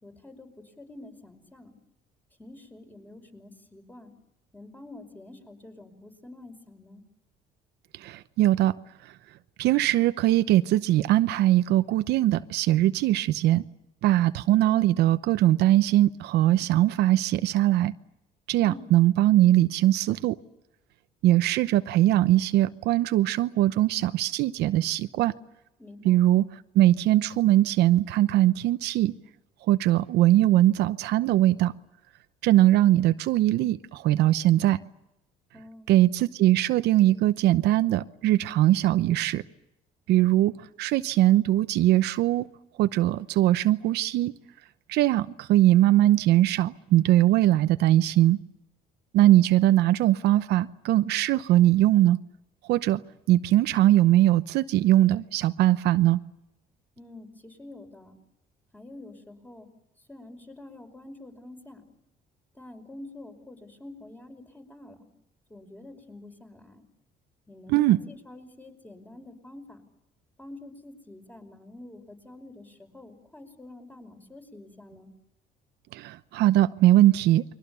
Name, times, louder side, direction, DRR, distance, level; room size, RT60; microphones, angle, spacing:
voice 1, 0.0-1.8 2.4-4.1 4.5-7.0 18.6-18.9 25.8-26.2 35.5-35.9 57.0-58.2 58.7-59.7 60.0-61.9 62.5-65.1 65.5-66.8 67.5-69.8 70.4-75.1, left 2 dB, 10° left, 5 dB, 5.3 m, -47 dB
voice 2, 7.9-8.7 9.6-13.6 14.0-17.9 18.5-20.4 21.2-25.3 26.0-26.5 26.7-29.1 29.7-31.7 32.4-34.8 35.9-39.4 40.1-42.5 42.8-44.3 44.9-48.4 49.1-52.2 52.7-53.0 53.3-56.2 67.7-68.0 75.9-77.4, right 14 dB, 80° right, 12 dB, 0.9 m, -21 dB
29.5 x 23.0 x 7.0 m, 0.88 s
cardioid pair, 110°, 17 cm